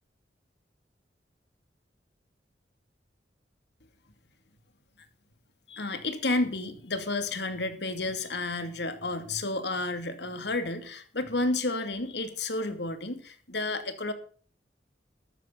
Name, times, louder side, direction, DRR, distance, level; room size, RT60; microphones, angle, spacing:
voice 1, 5.7-14.1, left 2 dB, 75° left, 8 dB, 2.6 m, -31 dB
14.0 x 13.0 x 4.0 m, 0.43 s
head